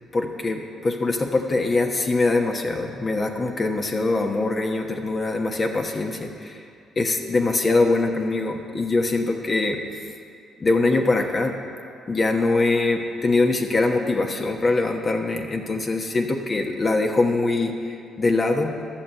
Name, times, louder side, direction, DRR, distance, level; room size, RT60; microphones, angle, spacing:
voice 1, 0.1-6.6 7.0-9.8 10.6-11.6 12.1-18.9, left 3 dB, 40° left, 2 dB, 1.2 m, -23 dB
12.0 x 6.7 x 7.7 m, 2.5 s
supercardioid pair, 65°, 0 cm